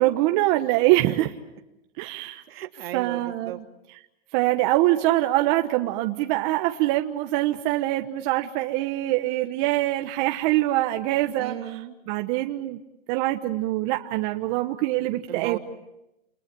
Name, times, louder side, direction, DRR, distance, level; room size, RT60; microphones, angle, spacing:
voice 1, 0.0-1.3 2.0-2.4 2.9-3.6 4.3-11.6 12.1-12.8 13.1-15.6, right 16 dB, 40° right, 5 dB, 1.3 m, -24 dB
voice 2, 2.5-3.6 11.4-12.0 15.3-15.6, right 12 dB, 70° right, 5 dB, 2.8 m, -35 dB
29.5 x 29.0 x 7.0 m, 0.92 s
supercardioid pair, 150°, 31 cm